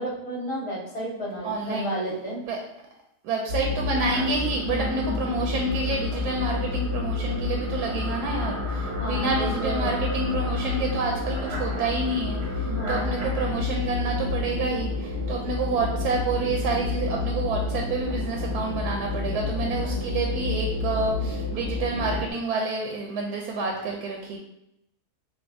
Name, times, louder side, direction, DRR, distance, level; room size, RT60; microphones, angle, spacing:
voice 1, 0.0-2.4 4.7-5.2 9.0-10.0 12.6-13.2, right 1 dB, 65° left, -7 dB, 2.0 m, -32 dB
voice 2, 1.4-1.9 2.4-2.6 3.2-24.4, right 3 dB, 80° right, 0 dB, 1.1 m, -28 dB
sound 1, 3.5-22.3, left 3 dB, 50° right, 0.8 m, -29 dB
6.2 x 2.3 x 2.6 m, 0.83 s
omnidirectional pair, 1.7 m